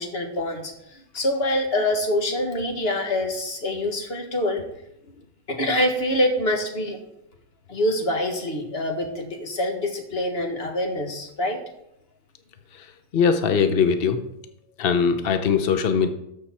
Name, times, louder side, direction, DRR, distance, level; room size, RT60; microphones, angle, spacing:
voice 1, 0.0-4.6 5.5-7.0 7.7-11.6, left 1 dB, 35° left, 3 dB, 1.6 m, -25 dB
voice 2, 13.1-14.2 14.8-16.1, left 6 dB, 70° left, 8 dB, 0.5 m, -21 dB
13.5 x 6.5 x 4.3 m, 0.82 s
omnidirectional pair, 2.0 m